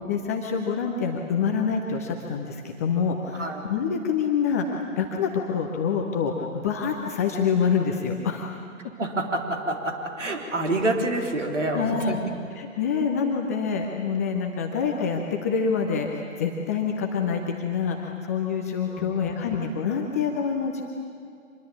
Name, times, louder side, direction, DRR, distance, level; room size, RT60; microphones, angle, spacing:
voice 1, 0.1-8.5 11.7-12.2 12.6-20.8, left 6 dB, 10° left, 1 dB, 0.6 m, -26 dB
voice 2, 9.0-12.2 18.9-19.6, right 1 dB, 60° right, 3 dB, 3.8 m, -28 dB
25.0 x 21.5 x 8.6 m, 2.4 s
figure-of-eight pair, 130°, 41 cm